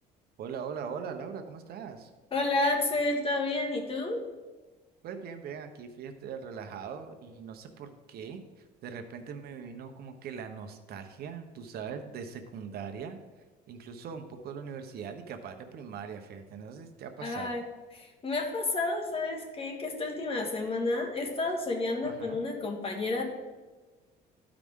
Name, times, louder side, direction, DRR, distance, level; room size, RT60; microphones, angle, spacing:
voice 1, 0.4-2.1 5.0-13.2 13.7-17.6 22.0-22.4, right 6 dB, 65° right, 6 dB, 0.9 m, -41 dB
voice 2, 2.3-4.2 17.2-17.6 17.9-23.2, left 2 dB, 35° left, 1 dB, 1.7 m, -30 dB
13.0 x 4.9 x 3.7 m, 1.3 s
cardioid pair, 110°, 17 cm